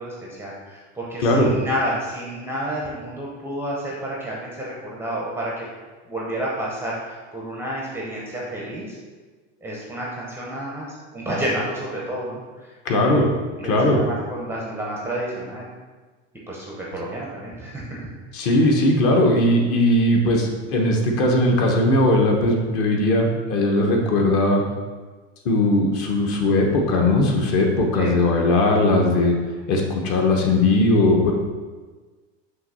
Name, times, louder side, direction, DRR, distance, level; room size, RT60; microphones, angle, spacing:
voice 1, 0.0-5.6 6.1-9.0 9.6-13.3 13.6-15.6 16.5-18.1 28.0-28.2, right 1 dB, 5° right, -4 dB, 0.6 m, -30 dB
voice 2, 1.2-1.5 12.8-13.3 13.6-14.0 18.3-24.6 25.4-29.4 29.7-31.3, left 1 dB, 40° left, 1 dB, 1.0 m, -19 dB
5.9 x 3.0 x 5.4 m, 1.4 s
supercardioid pair, 155°, 36 cm